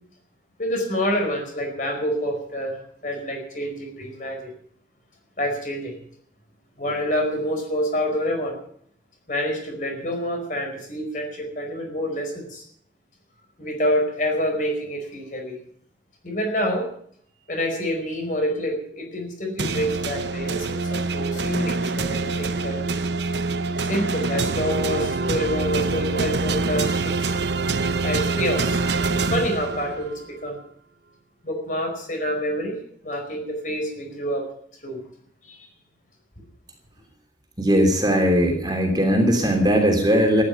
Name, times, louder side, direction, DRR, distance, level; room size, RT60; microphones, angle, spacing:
voice 1, 0.6-2.8 3.0-4.5 5.4-6.0 6.8-8.6 9.3-12.6 13.6-15.6 16.2-16.9 17.5-22.8 23.8-27.6 28.0-28.8 29.1-30.6 31.4-34.5 34.8-35.0 35.4-35.7, equal, 45° left, 3 dB, 4.9 m, -27 dB
sound 1, 19.6-30.2, right 3 dB, 70° right, 0.9 m, -25 dB
voice 2, 37.6-40.4, equal, 20° right, 2 dB, 3.1 m, -19 dB
14.5 x 10.5 x 9.4 m, 0.64 s
head